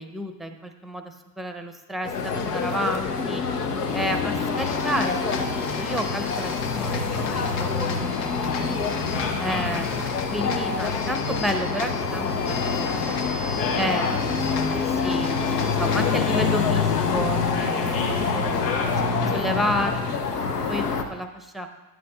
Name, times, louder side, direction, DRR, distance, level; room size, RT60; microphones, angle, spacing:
voice 1, 0.0-3.4 3.9-5.4 5.8-8.8 9.4-9.9 10.3-13.2 13.8-14.1 14.7-18.0 19.3-20.0 20.3-21.7, equal, ahead, 6 dB, 0.6 m, -31 dB
sound 1, 2.0-21.0, left 5 dB, 90° left, 0.6 m, -26 dB
sound 2, 4.6-16.1, left 5 dB, 55° left, 0.9 m, -38 dB
voice 2, 9.1-10.0 13.6-14.2 17.5-19.4, left 3 dB, 30° left, -1 dB, 1.6 m, -33 dB
10.0 x 7.7 x 2.3 m, 1.1 s
figure-of-eight pair, 55°, 46 cm